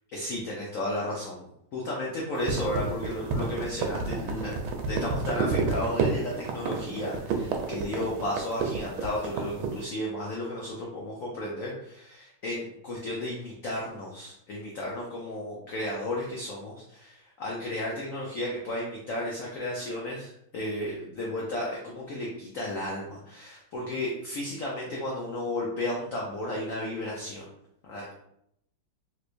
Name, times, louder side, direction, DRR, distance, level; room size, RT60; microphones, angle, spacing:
voice 1, 0.1-27.4 27.8-28.1, left 1 dB, 85° left, -3 dB, 0.7 m, -33 dB
sound 1, 2.3-9.8, right 5 dB, 85° right, 1.4 m, -30 dB
3.4 x 3.1 x 2.5 m, 0.76 s
omnidirectional pair, 2.2 m